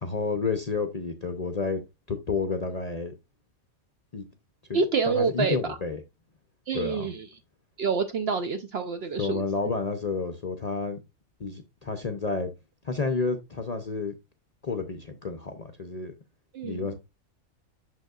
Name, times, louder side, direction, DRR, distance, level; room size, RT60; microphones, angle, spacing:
voice 1, 0.0-1.8 2.1-3.1 4.1-4.2 4.7-4.8 5.1-6.0 6.7-7.1 9.2-11.0 11.4-12.5 12.8-14.1 14.6-16.1 16.6-16.9, left 4 dB, 45° left, 0.5 m, -30 dB
voice 2, 4.7-5.8 6.7-7.3 7.8-9.4 16.5-16.8, right 5 dB, 65° right, 0.6 m, -27 dB
6.5 x 6.5 x 2.3 m
omnidirectional pair, 1.5 m